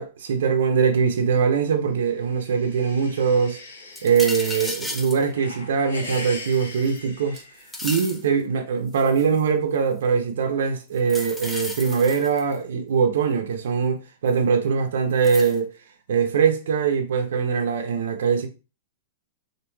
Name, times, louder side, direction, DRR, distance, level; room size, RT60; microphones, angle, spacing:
voice 1, 0.0-3.6 4.0-7.4 7.8-15.7 16.1-18.5, right 6 dB, 80° right, 0.5 m, -22 dB
sound 1, 2.1-4.8 5.2-8.1, left 3 dB, 90° left, 0.6 m, -40 dB
sound 2, 3.9-5.2 6.1-7.0 7.3-8.2 8.9-9.4 11.0-12.6 14.3-14.4 15.2-15.6, left 2 dB, 10° left, 0.5 m, -34 dB
3.0 x 2.5 x 2.2 m
hypercardioid pair, 130°, 0 cm